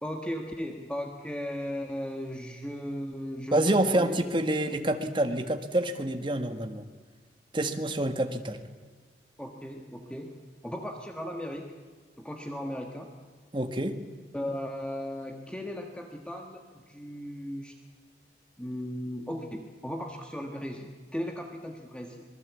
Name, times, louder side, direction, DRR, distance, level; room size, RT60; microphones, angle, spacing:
voice 1, 0.0-4.1 9.4-11.7 12.2-13.1 14.3-17.7 18.6-22.2, equal, 5° left, 3 dB, 1.4 m, -37 dB
voice 2, 3.5-6.8 7.5-8.6 13.5-14.0, right 1 dB, 30° right, 7 dB, 1.7 m, -27 dB
26.0 x 20.0 x 8.5 m, 1.5 s
head